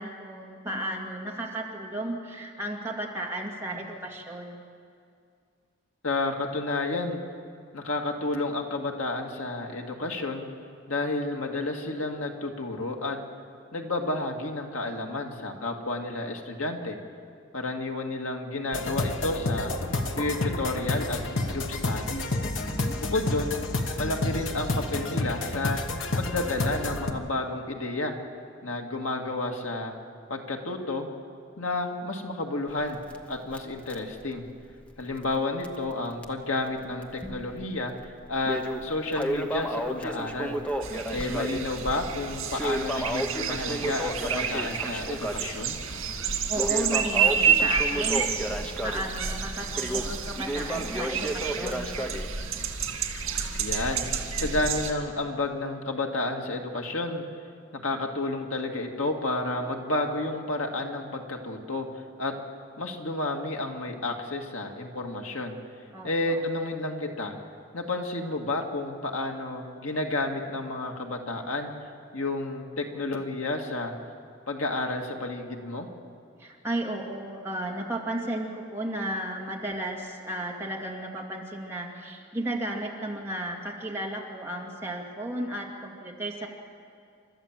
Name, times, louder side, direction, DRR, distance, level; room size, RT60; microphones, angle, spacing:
voice 1, 0.0-4.6 22.6-23.0 40.9-41.4 46.5-51.9 65.9-66.4 76.4-86.5, right 1 dB, 10° right, -2 dB, 2.3 m, -34 dB
voice 2, 6.0-7.2 7.7-10.5 10.9-13.2 13.7-17.0 17.5-19.7 20.2-22.2 23.0-23.5 24.0-25.8 26.2-28.2 28.6-29.9 30.3-31.1 31.6-33.0 33.3-34.5 35.0-37.9 38.3-40.6 41.1-45.8 53.6-57.2 57.8-62.3 62.8-65.6 66.0-67.4 67.7-71.7 72.1-73.9 74.5-75.9, left 2 dB, 85° left, 2 dB, 2.1 m, -31 dB
sound 1, 18.7-27.1, left 2 dB, 65° left, 1.4 m, -30 dB
Crackle, 32.7-35.4 35.6-35.7 36.2-36.3 37.0-37.6 38.0-52.3, right 1 dB, 5° left, 1.0 m, -33 dB
sound 2, 40.8-54.9, right 7 dB, 80° right, 2.3 m, -29 dB
29.0 x 13.0 x 7.5 m, 2.3 s
head